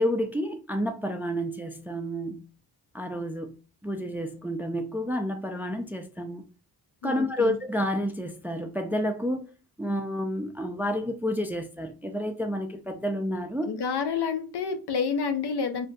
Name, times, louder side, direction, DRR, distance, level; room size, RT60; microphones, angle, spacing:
voice 1, 0.0-2.4 2.9-6.4 7.0-9.5 9.8-13.7, equal, 5° right, 0.3 m, -30 dB
voice 2, 7.0-7.6 13.6-15.9, left 5 dB, 80° left, 0.7 m, -29 dB
2.5 x 2.2 x 3.8 m
wide cardioid pair, 105°, 40 cm